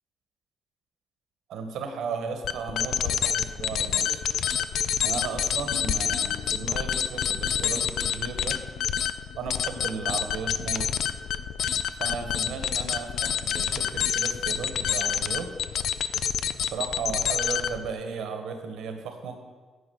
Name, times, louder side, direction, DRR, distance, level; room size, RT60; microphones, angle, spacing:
voice 1, 1.5-4.2 5.0-8.6 9.3-10.9 12.0-15.5 16.6-19.4, right 5 dB, 80° right, 6 dB, 1.4 m, -35 dB
sound 1, 2.4-17.9, left 9 dB, 70° left, 0.4 m, -27 dB
9.8 x 5.0 x 7.9 m, 1.4 s
cardioid pair, 90°, 0 cm